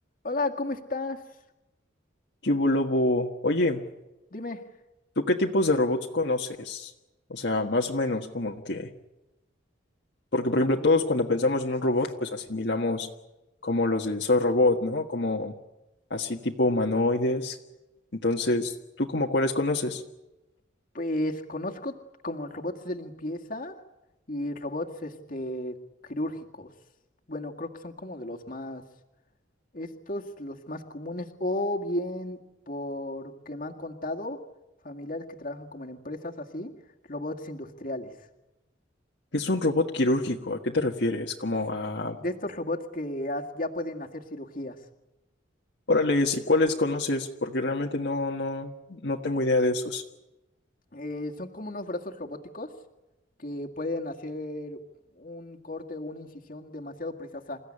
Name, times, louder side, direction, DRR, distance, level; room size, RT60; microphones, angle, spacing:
voice 1, 0.2-1.2 4.3-4.6 10.6-11.2 20.9-21.9 22.2-23.8 24.3-25.8 26.0-26.7 27.3-28.8 29.7-32.4 32.7-34.4 34.8-36.7 37.1-38.1 42.2-44.8 50.9-52.7 53.4-54.8 55.2-57.6, left 1 dB, 45° left, 3 dB, 2.0 m, -34 dB
voice 2, 2.4-3.8 5.2-6.9 7.3-8.9 10.3-13.1 13.6-15.5 16.1-17.6 18.1-20.0 39.3-42.2 45.9-50.0, left 2 dB, 60° left, 0 dB, 1.6 m, -26 dB
28.5 x 15.5 x 10.0 m, 1.0 s
head